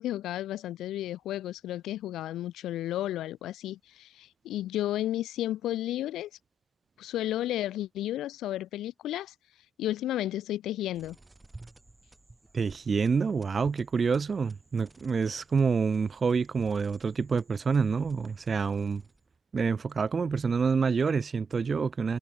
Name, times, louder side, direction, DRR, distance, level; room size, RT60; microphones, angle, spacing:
voice 1, 0.0-6.3 7.0-9.3 9.8-11.2, left 13 dB, 85° left, 2.7 m, -33 dB
sound 1, 10.9-19.4, right 2 dB, 15° right, 7.8 m, -54 dB
voice 2, 12.5-19.0 19.5-22.2, right 5 dB, 35° right, 0.6 m, -27 dB
cardioid pair, 120°, 0 cm